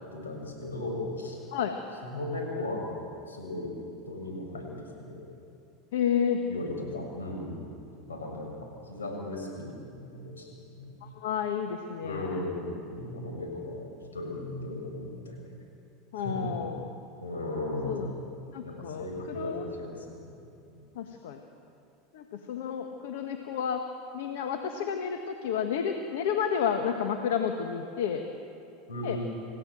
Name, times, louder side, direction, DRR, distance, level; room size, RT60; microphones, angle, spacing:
voice 1, 0.1-1.4 2.0-2.9 3.3-3.7 4.1-5.2 6.5-7.7 8.1-10.5 10.7-10.9 12.0-15.5 16.1-16.7 17.2-18.1 18.6-20.3 20.7-20.8 28.9-29.2, left 1 dB, 85° left, 1 dB, 6.7 m, -36 dB
voice 2, 5.9-6.4 11.2-12.4 16.1-16.9 17.8-18.1 18.5-19.7 20.9-21.4 22.1-23.8 24.1-28.2 29.0-29.2, left 7 dB, 70° left, 5 dB, 1.6 m, -31 dB
28.5 x 16.0 x 7.7 m, 2.7 s
hypercardioid pair, 85°, 0 cm